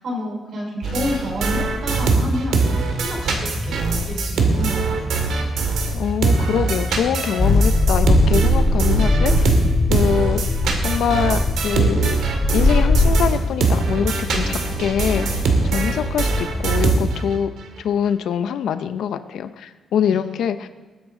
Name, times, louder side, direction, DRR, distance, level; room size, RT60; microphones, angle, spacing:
voice 1, 0.0-5.6 20.1-20.2, left 1 dB, 55° right, -1 dB, 4.2 m, -29 dB
sound 1, 0.8-6.0 6.2-17.4, right 4 dB, 85° right, 2.0 m, -22 dB
sound 2, 1.7-17.3, equal, 10° right, 2.9 m, -31 dB
voice 2, 5.9-9.6 9.9-10.4 10.8-12.2 12.5-17.5 17.8-20.7, left 8 dB, 80° left, 10 dB, 0.6 m, -24 dB
sound 3, 7.4-13.1, left 2 dB, 25° left, 1.4 m, -19 dB
20.0 x 9.6 x 3.8 m, 1.4 s
wide cardioid pair, 170°, 0 cm